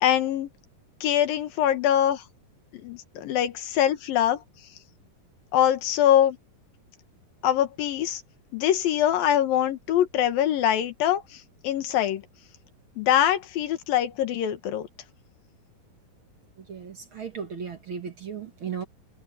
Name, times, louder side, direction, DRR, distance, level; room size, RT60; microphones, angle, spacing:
voice 1, 0.0-0.5 1.0-2.2 2.7-4.4 5.5-6.4 7.4-8.2 8.5-12.2 13.0-14.9, left 11 dB, 85° left, 3.2 m, -23 dB
voice 2, 16.6-18.8, right 7 dB, 45° right, 2.0 m, -36 dB
omnidirectional pair, 4.0 m